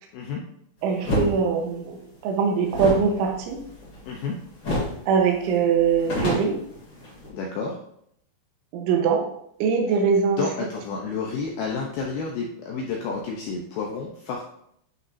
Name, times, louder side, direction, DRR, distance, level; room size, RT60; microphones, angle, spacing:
voice 1, 0.1-0.4 4.0-4.4 7.3-7.8 10.3-14.4, left 4 dB, 80° left, -1 dB, 2.2 m, -30 dB
voice 2, 0.8-3.6 5.1-6.6 8.7-9.2 9.6-10.4, right 6 dB, 85° right, 1 dB, 3.5 m, -22 dB
sound 1, 1.0-1.3 2.7-4.3 4.6-5.0 5.3-5.4 5.7-7.3, left 1 dB, 35° left, 2.6 m, -27 dB
11.5 x 5.7 x 2.6 m, 0.71 s
omnidirectional pair, 5.4 m